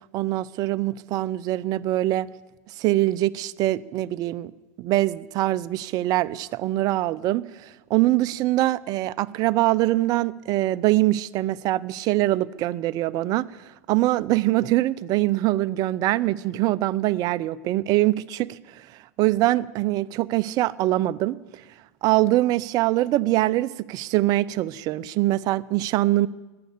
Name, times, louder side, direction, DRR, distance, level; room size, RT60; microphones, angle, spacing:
voice 1, 0.1-2.3 2.7-4.5 4.8-18.9 19.2-21.6 22.0-26.3, right 16 dB, 45° right, 0.5 m, -23 dB
14.5 x 10.5 x 8.5 m
hypercardioid pair, 110°, 9 cm